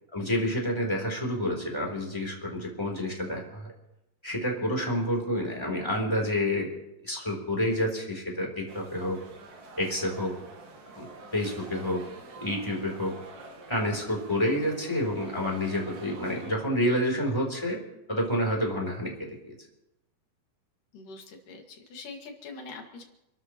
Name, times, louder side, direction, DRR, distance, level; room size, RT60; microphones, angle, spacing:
voice 1, 0.1-3.7 4.2-6.7 7.0-9.2 9.7-10.3 10.9-12.0 12.4-13.1 13.7-17.8 18.1-19.5, left 1 dB, 5° left, -1 dB, 3.0 m, -29 dB
sound 1, 8.7-16.5, right 3 dB, 65° right, 3.8 m, -47 dB
voice 2, 20.9-23.0, left 3 dB, 55° left, 2 dB, 3.5 m, -43 dB
29.5 x 12.5 x 3.1 m, 0.89 s
omnidirectional pair, 4.7 m